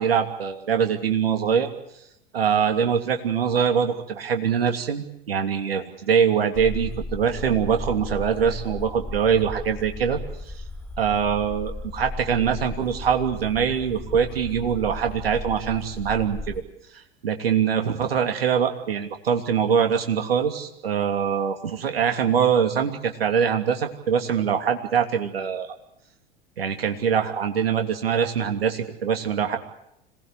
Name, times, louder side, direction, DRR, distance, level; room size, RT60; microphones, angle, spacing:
voice 1, 0.0-1.7 2.3-10.2 11.0-16.6 17.2-25.7 26.6-29.6, right 7 dB, 75° right, 5 dB, 2.9 m, -23 dB
sound 1, 6.5-16.6, left 2 dB, 5° left, 4.5 m, -36 dB
26.5 x 19.5 x 8.2 m, 0.79 s
figure-of-eight pair, 85°, 30 cm